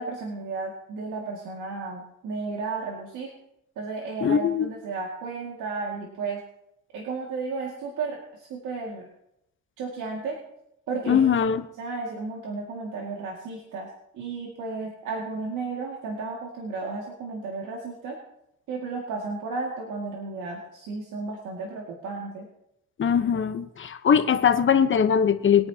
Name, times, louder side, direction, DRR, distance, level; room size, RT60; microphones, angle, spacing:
voice 1, 0.0-3.3 3.8-6.4 6.9-9.1 9.8-10.4 10.9-11.3 11.8-13.9 14.1-18.2 18.7-22.5, right 4 dB, 85° right, -1 dB, 2.2 m, -33 dB
voice 2, 4.2-4.7 11.1-11.6 23.0-25.7, left 7 dB, 40° left, 10 dB, 1.0 m, -21 dB
21.5 x 9.9 x 2.9 m, 0.82 s
cardioid pair, 90°, 30 cm